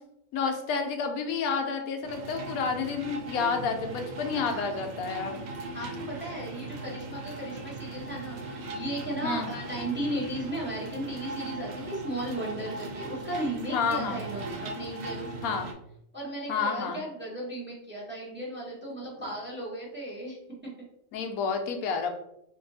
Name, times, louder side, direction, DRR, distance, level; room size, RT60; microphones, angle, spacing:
voice 1, 0.3-5.4 9.2-9.5 13.7-14.2 15.4-15.7 16.5-17.0 21.1-22.1, left 5 dB, 85° left, 4 dB, 1.1 m, -30 dB
sound 1, 2.0-15.7, right 2 dB, 60° right, 0.7 m, -39 dB
voice 2, 4.3-4.8 5.7-15.5 16.1-20.4, right 1 dB, 10° right, -5 dB, 0.7 m, -35 dB
2.7 x 2.6 x 3.9 m, 0.79 s
omnidirectional pair, 1.5 m